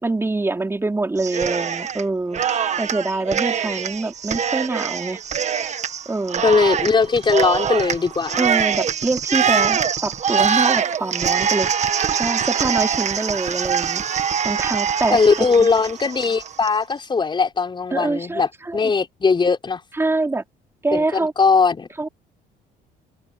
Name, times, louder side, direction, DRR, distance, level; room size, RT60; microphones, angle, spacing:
voice 1, 0.0-2.4 2.8-5.2 6.1-6.4 8.4-11.7 12.2-14.0 14.4-15.5 17.9-18.9 20.0-20.4 20.8-21.3 22.0-22.1, right 2 dB, 15° right, 3.9 m, -24 dB
Cheering, 1.2-2.0 2.3-16.7, right 7 dB, 45° right, 1.6 m, -23 dB
voice 2, 6.4-8.4 15.1-19.8 20.9-21.9, left 4 dB, 30° left, 5.5 m, -19 dB
cardioid pair, 110°, 17 cm